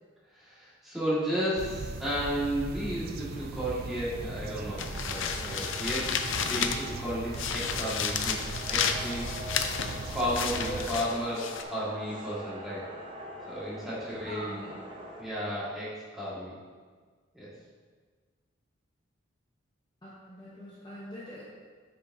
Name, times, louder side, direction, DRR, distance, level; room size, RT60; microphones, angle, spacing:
voice 1, 0.3-6.1 6.5-9.4 10.1-12.8 13.5-14.6 15.2-16.6 17.3-17.5, equal, ahead, -10 dB, 1.9 m, -33 dB
sound 1, 1.6-11.1, right 3 dB, 45° right, 0.3 m, -39 dB
sound 2, 4.8-7.0 7.3-11.6, left 7 dB, 70° left, 0.5 m, -32 dB
sound 3, 4.9-15.2, equal, 25° right, 0.7 m, -44 dB
voice 2, 14.3-14.8 20.0-21.4, equal, 20° left, -8 dB, 1.0 m, -42 dB
9.1 x 5.2 x 2.8 m, 1.5 s
head